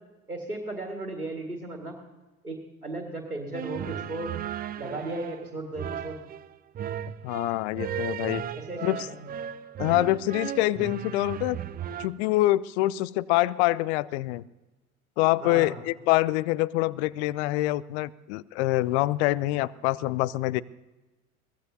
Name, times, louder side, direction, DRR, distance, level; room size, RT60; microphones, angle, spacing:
voice 1, 0.3-2.0 2.4-4.3 4.8-6.2 8.5-9.3 15.4-15.8, right 2 dB, 90° right, 2 dB, 1.9 m, -36 dB
sound 1, 3.5-12.1, right 10 dB, 20° right, 0.5 m, -36 dB
voice 2, 7.2-8.4 8.8-9.0 9.8-11.6 12.0-14.4 15.2-20.6, left 17 dB, 50° left, 21 dB, 0.6 m, -25 dB
23.0 x 18.0 x 2.7 m, 1.1 s
figure-of-eight pair, 65°, 43 cm